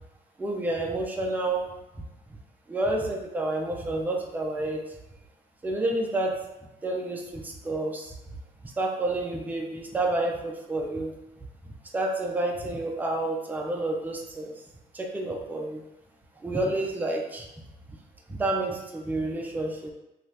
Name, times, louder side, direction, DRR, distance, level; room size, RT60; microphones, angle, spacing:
voice 1, 0.4-1.7 2.7-4.8 5.6-6.4 6.8-8.1 8.6-11.1 11.9-14.5 14.9-15.8 16.4-17.5 18.3-19.9, right 2 dB, 10° right, 0 dB, 0.4 m, -29 dB
2.7 x 2.4 x 3.3 m, 0.97 s
cardioid pair, 110°, 17 cm